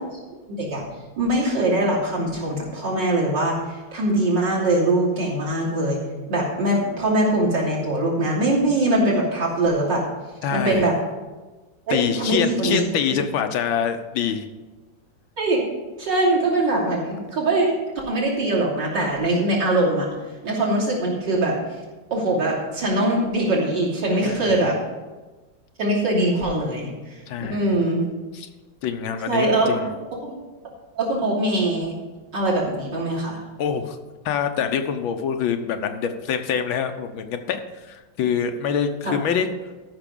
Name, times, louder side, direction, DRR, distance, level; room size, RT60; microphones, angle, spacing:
voice 1, 1.2-6.0 6.3-10.0 10.5-10.9 11.9-12.8 15.4-15.6 16.0-20.1 20.4-21.6 22.1-24.8 25.8-27.2 27.5-28.1 29.3-29.8 30.2-30.3 31.0-32.0 32.3-33.4 39.0-39.2, right 1 dB, 65° right, -5 dB, 3.5 m, -22 dB
voice 2, 10.4-10.9 11.9-14.5 24.2-24.7 27.3-27.9 28.3-28.5 28.8-29.9 33.6-34.0 34.3-39.6, left 7 dB, 90° left, 7 dB, 1.6 m, -25 dB
13.5 x 5.9 x 5.3 m, 1.2 s
omnidirectional pair, 2.1 m